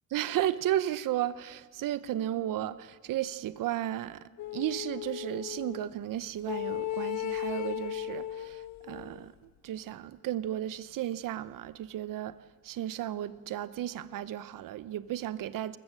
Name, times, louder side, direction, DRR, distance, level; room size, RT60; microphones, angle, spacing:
voice 1, 0.1-4.2 4.5-9.3 9.6-12.4 12.6-15.8, right 12 dB, 80° right, 1.0 m, -34 dB
sound 1, 4.4-5.9 6.4-9.2, left 12 dB, 60° left, 0.8 m, -36 dB
21.0 x 21.0 x 7.7 m
cardioid pair, 90°, 32 cm